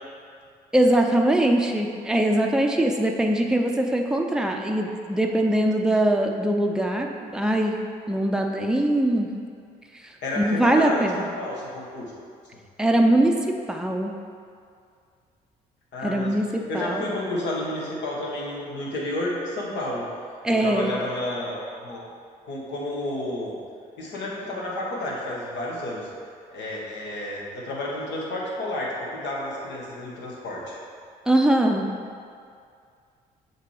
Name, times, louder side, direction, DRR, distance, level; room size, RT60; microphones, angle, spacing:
voice 1, 0.7-7.8 8.1-9.3 10.4-11.2 12.8-14.1 16.0-17.0 20.4-20.9 31.3-31.9, right 1 dB, 5° right, 2 dB, 0.6 m, -22 dB
voice 2, 10.2-12.1 15.9-16.4 16.7-20.1 20.6-22.0 22.5-23.5 24.0-26.1 26.5-30.8, left 1 dB, 65° left, -4 dB, 1.4 m, -31 dB
6.5 x 3.0 x 4.9 m, 2.3 s
hypercardioid pair, 50°, 20 cm